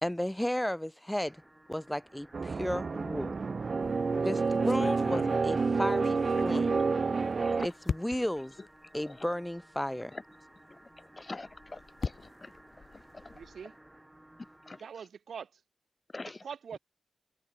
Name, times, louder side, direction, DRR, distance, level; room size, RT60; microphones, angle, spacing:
voice 1, 0.0-1.4 1.7-3.4 4.2-6.8 7.6-8.6 8.9-10.1, left 1 dB, 10° left, 0.4 m, -34 dB
sound 1, 1.1-14.9, right 1 dB, 15° right, 3.7 m, -57 dB
sound 2, 2.3-7.7, right 4 dB, 60° right, 0.3 m, -29 dB
sound 3, 3.8-4.1 4.6-7.4 7.9-8.4 9.1-9.2 9.6-9.7 11.3-13.6, left 5 dB, 65° left, 0.5 m, -40 dB
voice 2, 11.2-12.1 12.4-12.5 12.9-13.3 14.7-14.8 16.1-16.4, left 3 dB, 40° left, 1.9 m, -44 dB
voice 3, 13.3-13.7 14.8-15.6 16.2-16.8, right 7 dB, 85° right, 1.4 m, -43 dB
cardioid pair, 50°, 0 cm